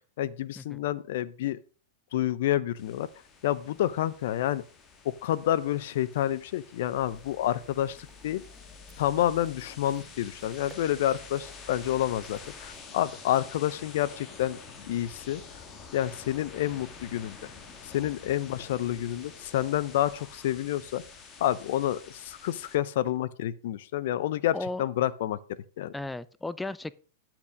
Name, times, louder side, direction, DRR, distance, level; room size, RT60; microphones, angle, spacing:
voice 1, 0.2-1.6 2.1-3.1 3.4-4.6 5.0-8.0 8.2-8.4 9.0-14.6 14.8-15.4 15.9-17.5 17.9-21.0 21.4-25.9, left 12 dB, 65° left, 18 dB, 0.6 m, -29 dB
sound 1, 2.8-22.8, left 5 dB, 30° left, 1.9 m, -48 dB
sound 2, 6.9-12.8, left 2 dB, 20° right, 1.2 m, -53 dB
voice 2, 24.5-24.9 25.9-26.9, left 2 dB, 10° left, 18 dB, 0.4 m, -35 dB
10.5 x 5.9 x 5.1 m, 0.40 s
hypercardioid pair, 105°, 0 cm